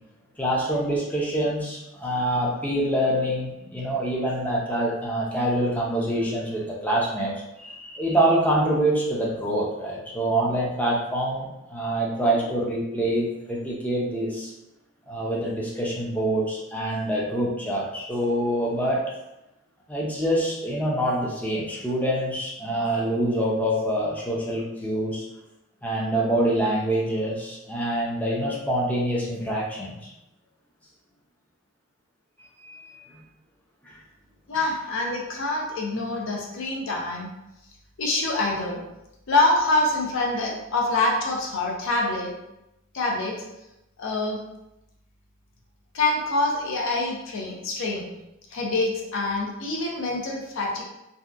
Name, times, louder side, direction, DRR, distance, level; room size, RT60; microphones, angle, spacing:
voice 1, 0.4-14.5 15.1-19.0 19.9-25.2 25.8-30.0 32.6-33.2 33.9-34.0 34.5-34.6, right 1 dB, 10° left, -4 dB, 0.5 m, -25 dB
voice 2, 34.5-37.3 38.0-38.8 39.3-42.3 42.9-43.3 44.0-44.4 45.9-48.1 48.5-50.8, left 2 dB, 65° left, -1 dB, 0.5 m, -25 dB
2.7 x 2.1 x 2.4 m, 0.91 s
head